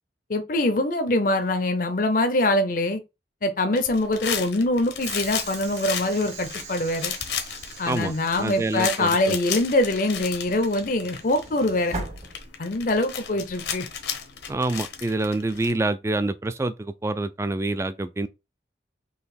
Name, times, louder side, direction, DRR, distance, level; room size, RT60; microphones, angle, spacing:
voice 1, 0.3-3.0 3.4-7.1 7.8-12.0 12.6-13.9, left 1 dB, 50° left, 0.6 m, -24 dB
sound 1, 3.8-15.7, left 8 dB, 80° left, 1.0 m, -34 dB
Train / Sliding door, 5.0-13.0, right 3 dB, 40° right, 1.2 m, -41 dB
voice 2, 7.9-9.4 14.5-18.3, right 2 dB, 15° right, 0.3 m, -27 dB
4.0 x 3.0 x 4.2 m
head